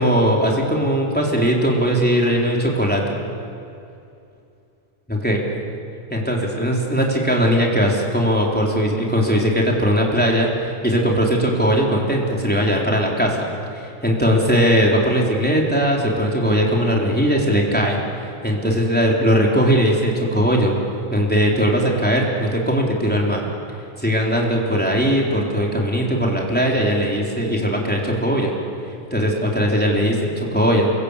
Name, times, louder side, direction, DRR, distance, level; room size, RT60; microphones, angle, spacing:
voice 1, 0.0-3.2 5.1-5.5 6.1-20.7 21.1-23.4 24.0-28.6 29.1-30.9, equal, 5° left, -2 dB, 3.6 m, -19 dB
28.5 x 22.5 x 8.4 m, 2.6 s
omnidirectional pair, 3.8 m